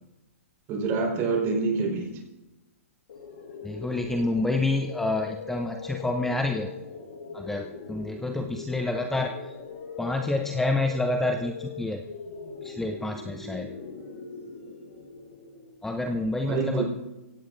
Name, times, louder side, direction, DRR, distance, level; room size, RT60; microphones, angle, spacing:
voice 1, 0.7-2.2 16.5-16.8, right 4 dB, 30° right, 1 dB, 4.6 m, -26 dB
sound 1, 3.1-15.9, left 5 dB, 65° left, 6.0 m, -40 dB
voice 2, 3.6-6.7 7.3-9.6 10.0-12.0 12.6-13.7 15.8-16.8, left 2 dB, 5° left, 5 dB, 0.7 m, -28 dB
23.5 x 16.5 x 2.6 m, 1.1 s
hypercardioid pair, 135°, 8 cm